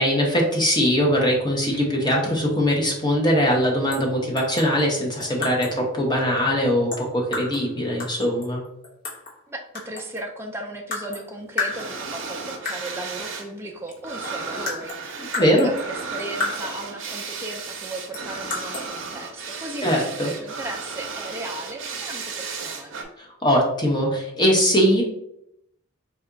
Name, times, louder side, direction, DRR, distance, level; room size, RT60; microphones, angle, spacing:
voice 1, 0.0-8.6 15.3-15.7 19.8-20.3 23.2-25.0, equal, 20° left, -1 dB, 0.8 m, -21 dB
sound 1, 3.9-4.1 4.4-5.8 6.9-7.7 8.0-9.4 9.8-10.3 10.9-11.3 11.6-12.3 12.7-13.0 13.9-14.0 14.2-16.9 18.1-18.9, left 3 dB, 40° left, 1.1 m, -32 dB
voice 2, 9.5-23.0, right 1 dB, 10° right, 1 dB, 0.3 m, -36 dB
sound 2, 11.6-13.5 13.7-23.0, right 5 dB, 60° right, 0.6 m, -34 dB
4.1 x 2.3 x 3.7 m, 0.77 s
head